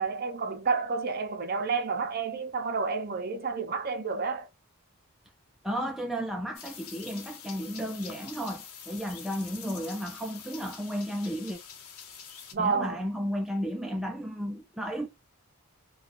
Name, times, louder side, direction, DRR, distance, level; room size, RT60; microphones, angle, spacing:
voice 1, 0.0-4.5 12.5-13.0, right 5 dB, 45° right, 0.6 m, -30 dB
voice 2, 5.6-11.6 12.6-15.1, equal, ahead, 0.3 m, -33 dB
sound 1, 6.5-12.5, left 7 dB, 80° left, 0.8 m, -45 dB
4.0 x 2.3 x 2.5 m
head